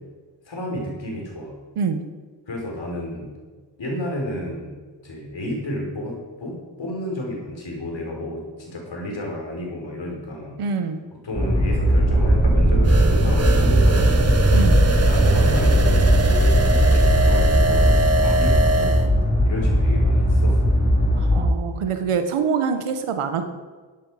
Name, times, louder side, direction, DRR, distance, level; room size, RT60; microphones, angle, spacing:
voice 1, 0.5-1.6 2.5-3.3 3.8-4.8 5.0-10.6 11.1-14.3 15.0-20.7, left 1 dB, 60° left, -1 dB, 4.6 m, -31 dB
voice 2, 10.6-11.0 14.5-14.8 21.3-23.5, right 6 dB, 90° right, 8 dB, 1.2 m, -25 dB
sound 1, 11.3-21.5, equal, 20° left, 4.2 m, -19 dB
sound 2, 11.5-19.3, right 3 dB, 10° right, 0.6 m, -23 dB
sound 3, 12.8-19.1, right 2 dB, 30° right, 1.3 m, -24 dB
12.0 x 10.0 x 5.0 m, 1.4 s
cardioid pair, 50°, 49 cm